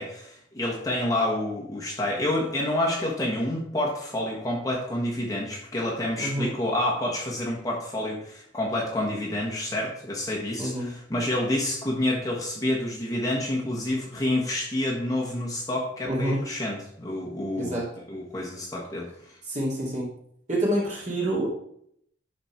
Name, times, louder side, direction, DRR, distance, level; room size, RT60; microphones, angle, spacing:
voice 1, 0.0-17.8 18.1-19.4, left 1 dB, 20° left, -3 dB, 1.4 m, -28 dB
voice 2, 6.2-6.5 10.6-10.9 16.0-16.4 17.5-17.9 19.5-20.1 20.5-21.5, right 1 dB, 40° right, -4 dB, 2.7 m, -27 dB
11.0 x 4.4 x 4.6 m, 0.69 s
head